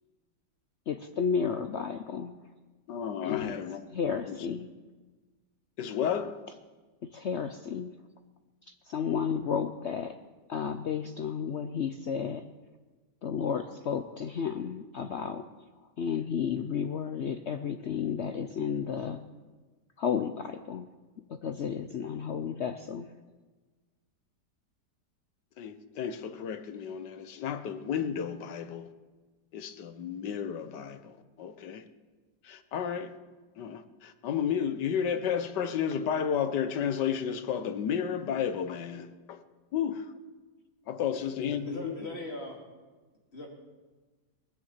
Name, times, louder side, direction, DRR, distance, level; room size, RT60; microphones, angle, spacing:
voice 1, 0.9-2.4 3.2-3.5 3.9-4.7 7.1-7.9 8.9-10.2 10.5-12.4 13.2-15.4 16.0-19.2 20.0-20.9 21.4-23.1, left 7 dB, 60° left, 0.7 m, -32 dB
voice 2, 2.9-3.9 4.3-4.5 5.8-6.4 25.6-28.9 29.5-31.8 32.4-33.2 33.6-39.4 39.7-40.1 40.9-42.0, left 8 dB, 80° left, 1.6 m, -32 dB
voice 3, 41.1-42.6 43.3-43.5, left 1 dB, 35° left, 2.9 m, -40 dB
19.5 x 9.5 x 7.3 m
omnidirectional pair, 1.8 m